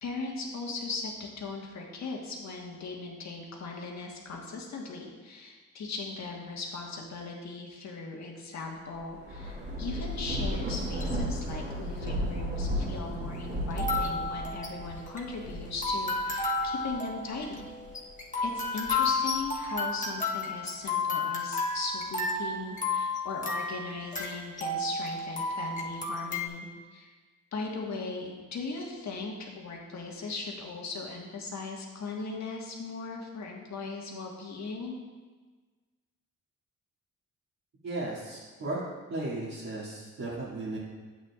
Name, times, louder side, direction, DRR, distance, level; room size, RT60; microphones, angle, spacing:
voice 1, 0.0-17.7 18.4-27.1 27.5-34.9, left 3 dB, 60° left, 0 dB, 1.5 m, -38 dB
Thunder / Rain, 9.0-17.9 18.4-19.7, equal, 35° right, 2.1 m, -35 dB
sound 1, 10.7-11.2 12.1-12.2 13.7-26.5, left 3 dB, 25° left, 1.1 m, -32 dB
voice 2, 37.8-38.8 39.1-40.8, right 2 dB, 55° right, -11 dB, 2.4 m, -35 dB
9.1 x 8.1 x 2.4 m, 1.4 s
cardioid pair, 85°, 32 cm